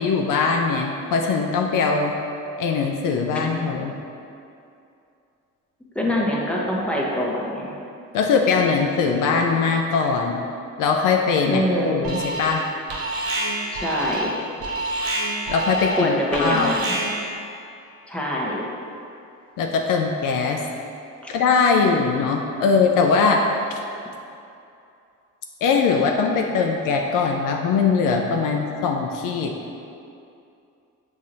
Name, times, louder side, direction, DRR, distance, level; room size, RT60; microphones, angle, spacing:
voice 1, 0.0-2.1 2.6-3.9 8.1-10.4 10.8-12.7 15.5-16.1 16.4-16.7 19.6-20.7 21.3-23.5 25.6-29.6, left 5 dB, 65° left, 2 dB, 0.5 m, -21 dB
voice 2, 5.9-7.7 11.4-12.2 13.7-14.4 15.9-16.9 18.1-18.6, left 1 dB, 5° left, -3 dB, 0.8 m, -24 dB
Alarm, 12.0-12.6 12.9-17.4, right 1 dB, 85° right, 0.7 m, -27 dB
5.5 x 2.9 x 2.6 m, 2.6 s
supercardioid pair, 60°, 35 cm